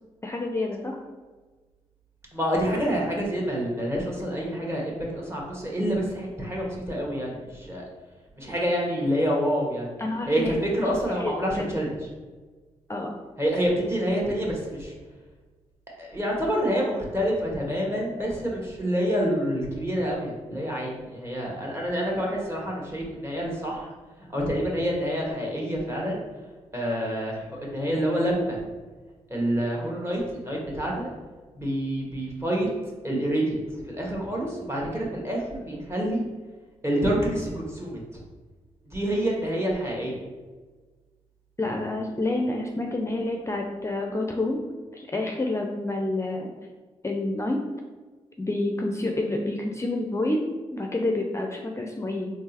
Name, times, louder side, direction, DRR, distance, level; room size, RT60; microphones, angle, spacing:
voice 1, 0.2-1.0 10.0-10.6 11.2-11.7 12.9-13.1 41.6-44.6 44.9-46.5 47.0-47.6 48.4-50.4 50.7-52.3, left 2 dB, 20° left, 1 dB, 0.5 m, -28 dB
voice 2, 2.3-7.8 8.4-9.9 10.3-11.9 13.4-14.9 16.0-23.9 24.3-26.2 26.7-28.6 29.3-31.1 31.5-32.7 33.0-33.6 33.9-36.2 36.8-38.2 38.8-40.1, equal, 20° right, -2 dB, 1.4 m, -27 dB
3.6 x 2.9 x 2.9 m, 1.3 s
supercardioid pair, 40°, 13 cm